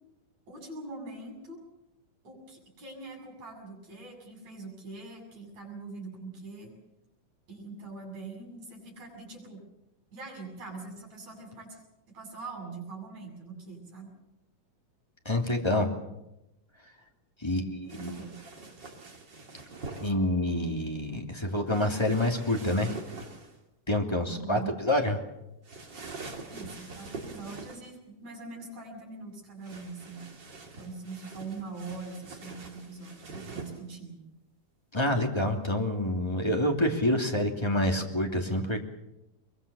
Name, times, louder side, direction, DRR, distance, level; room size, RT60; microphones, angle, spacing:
voice 1, 0.5-1.6 2.2-6.7 7.5-9.6 10.1-11.8 12.1-14.1 17.4-18.4 24.3-24.8 26.5-30.4 30.8-34.2, right 3 dB, 60° right, 0 dB, 8.7 m, -43 dB
voice 2, 15.2-15.9 17.4-18.2 20.0-22.9 23.9-25.2 34.9-38.8, left 1 dB, 10° left, 2 dB, 2.4 m, -27 dB
sound 1, 17.9-20.1 21.7-23.6 25.6-28.0 29.6-33.8, right 3 dB, 35° right, 3.4 m, -44 dB
23.5 x 23.0 x 7.1 m, 0.90 s
omnidirectional pair, 3.7 m